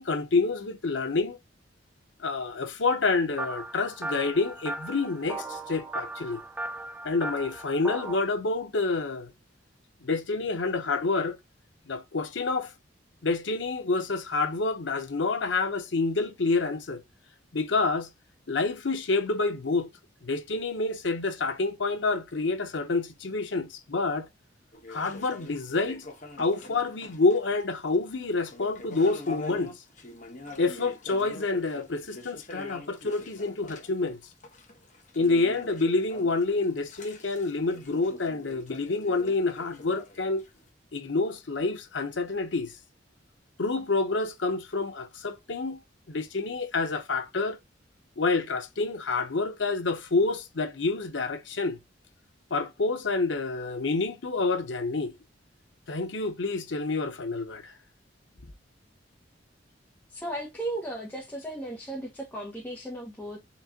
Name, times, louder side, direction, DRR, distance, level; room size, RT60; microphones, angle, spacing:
voice 1, 0.0-1.4 2.2-6.4 7.0-9.3 10.0-11.4 11.9-12.7 13.2-17.0 17.5-18.1 18.5-19.9 20.2-24.3 24.9-26.0 26.4-29.7 30.6-34.2 35.2-40.4 40.9-42.7 43.6-45.8 46.1-47.6 48.2-51.8 52.5-55.1 55.9-57.7, left 3 dB, 90° left, 0.9 m, -28 dB
sound 1, 3.4-8.2, right 2 dB, 10° right, 0.4 m, -37 dB
sound 2, 24.7-27.6 27.9-40.7, left 2 dB, 40° left, 1.2 m, -45 dB
voice 2, 60.1-63.4, right 1 dB, 10° left, 1.1 m, -36 dB
4.3 x 3.2 x 3.6 m
head